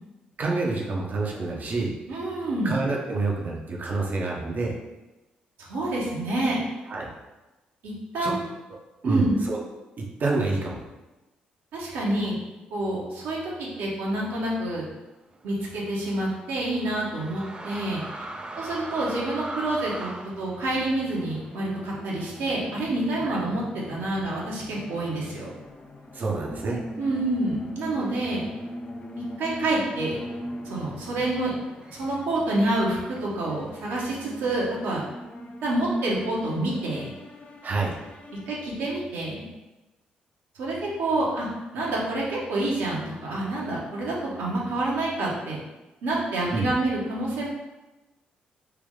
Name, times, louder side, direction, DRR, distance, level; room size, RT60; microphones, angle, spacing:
voice 1, 0.4-1.9 2.6-4.7 6.9-7.1 8.2-8.4 9.0-9.6 10.0-10.8 23.2-23.4 26.1-26.8 37.6-37.9 46.4-46.7, right 3 dB, 45° right, -2 dB, 0.8 m, -27 dB
voice 2, 2.1-2.8 5.7-6.6 7.8-8.4 9.0-9.4 11.7-12.4 12.7-14.9 15.4-18.0 18.6-20.1 20.4-25.5 27.0-28.4 29.4-30.2 30.6-31.5 31.9-35.1 35.6-37.1 38.5-39.5 40.6-45.6 46.0-47.5, right 2 dB, 65° right, -5 dB, 1.1 m, -27 dB
sound 1, 15.3-22.9 23.3-23.4 24.2-24.6 25.4-25.5 25.7-27.5 27.8-28.3 28.6-32.4 33.2-34.0, right 1 dB, 25° right, 0.5 m, -41 dB
sound 2, 20.4-39.2, left 1 dB, 35° left, 0.5 m, -41 dB
3.5 x 3.0 x 3.6 m, 1.1 s
figure-of-eight pair, 45°, 4 cm